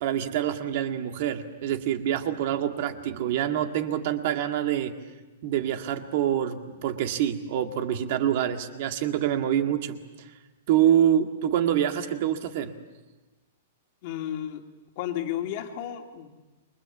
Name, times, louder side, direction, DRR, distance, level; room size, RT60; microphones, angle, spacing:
voice 1, 0.0-4.9 5.4-10.0 10.7-12.7, right 10 dB, 45° right, 6 dB, 1.9 m, -26 dB
voice 2, 14.0-14.6 15.0-16.3, left 11 dB, 40° left, 3 dB, 2.4 m, -32 dB
28.5 x 24.5 x 7.4 m, 1.2 s
hypercardioid pair, 170°, 0 cm